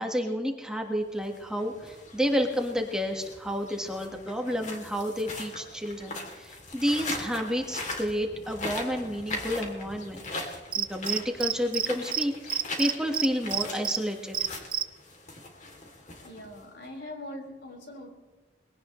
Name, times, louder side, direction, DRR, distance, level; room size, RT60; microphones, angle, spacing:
voice 1, 0.0-10.2 10.7-14.5, equal, 5° right, 2 dB, 1.5 m, -30 dB
sound 1, 1.1-16.8, left 2 dB, 45° left, 2.9 m, -40 dB
Cricket, 10.7-11.9 12.1-12.2 12.5-14.0 14.3-14.8, right 9 dB, 30° right, 0.5 m, -27 dB
voice 2, 16.2-18.1, left 1 dB, 65° left, 0 dB, 4.7 m, -42 dB
22.0 x 17.0 x 3.2 m, 1.3 s
head